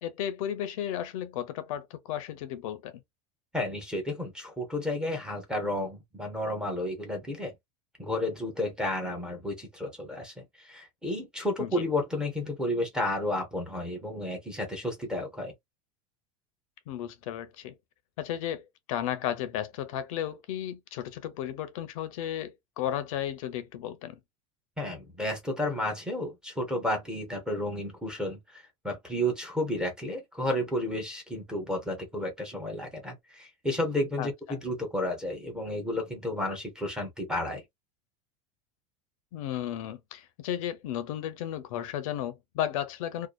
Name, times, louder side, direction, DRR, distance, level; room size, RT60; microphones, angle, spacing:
voice 1, 0.0-3.0 11.6-11.8 16.9-17.7 18.2-24.2 34.2-34.6 39.3-43.3, left 11 dB, 65° left, 0.6 m, -34 dB
voice 2, 3.5-7.5 8.0-15.5 24.8-37.6, left 1 dB, 5° right, 0.6 m, -32 dB
2.6 x 2.3 x 2.3 m
supercardioid pair, 175°, 18 cm